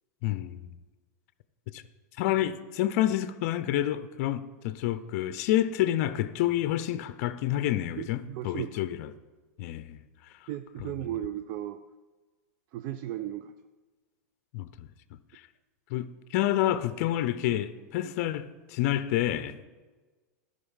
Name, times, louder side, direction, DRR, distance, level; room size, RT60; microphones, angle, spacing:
voice 1, 0.2-0.8 1.7-1.8 2.2-9.1 9.6-10.5 10.8-10.9 14.5-14.9 15.3-15.5 15.9-19.7, left 13 dB, 55° left, 0.5 m, -29 dB
voice 2, 8.0-8.7 10.5-11.8 12.7-13.5, right 12 dB, 45° right, 0.4 m, -35 dB
12.0 x 5.2 x 5.7 m
hypercardioid pair, 130°, 9 cm